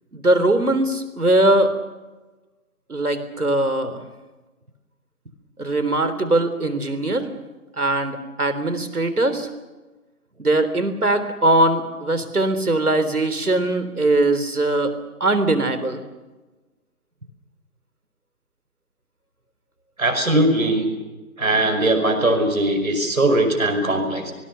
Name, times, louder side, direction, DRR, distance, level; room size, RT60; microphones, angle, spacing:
voice 1, 0.1-1.7 2.9-4.0 5.6-7.3 7.8-9.5 10.4-14.9 15.2-16.0, right 2 dB, 80° right, 11 dB, 3.7 m, -20 dB
voice 2, 20.0-20.9 21.4-24.3, right 1 dB, 65° right, 5 dB, 5.4 m, -20 dB
26.0 x 20.0 x 6.8 m, 1.2 s
figure-of-eight pair, 160°, 44 cm